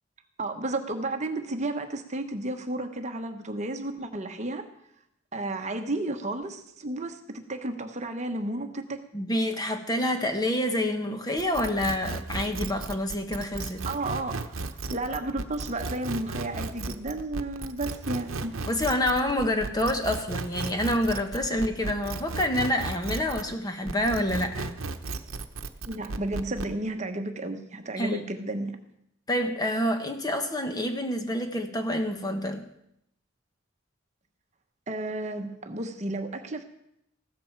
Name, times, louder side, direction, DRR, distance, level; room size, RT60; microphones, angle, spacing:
voice 1, 0.4-4.7 5.3-9.0 13.8-18.5 25.9-28.8 34.9-36.6, right 2 dB, 35° right, 6 dB, 1.1 m, -32 dB
voice 2, 9.1-13.8 18.6-24.7 28.0-28.2 29.3-32.6, left 1 dB, 20° left, 6 dB, 1.1 m, -27 dB
sound 1, 11.4-23.5 23.9-26.7, right 3 dB, 80° right, 0.9 m, -35 dB
15.0 x 13.0 x 4.6 m, 0.76 s
head